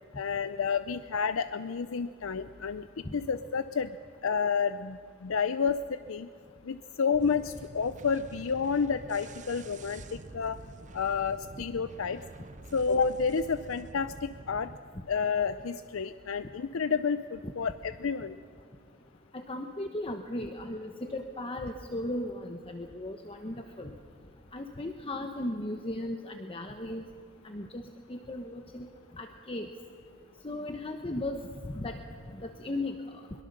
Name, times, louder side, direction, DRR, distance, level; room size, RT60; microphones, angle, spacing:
voice 1, 0.2-2.9 3.1-3.9 4.2-5.8 6.1-6.3 6.7-10.0 10.3-10.6 10.9-12.2 12.7-14.7 15.1-18.4, left 5 dB, 80° left, 12 dB, 0.5 m, -30 dB
sound 1, 7.1-14.8, right 2 dB, 35° right, 0.6 m, -47 dB
voice 2, 19.3-23.9 24.5-27.0 27.4-27.8 28.1-28.9 29.2-29.7 30.4-32.0 32.3-33.1, left 1 dB, 25° left, 5 dB, 0.9 m, -36 dB
22.5 x 22.5 x 6.6 m, 2.3 s
head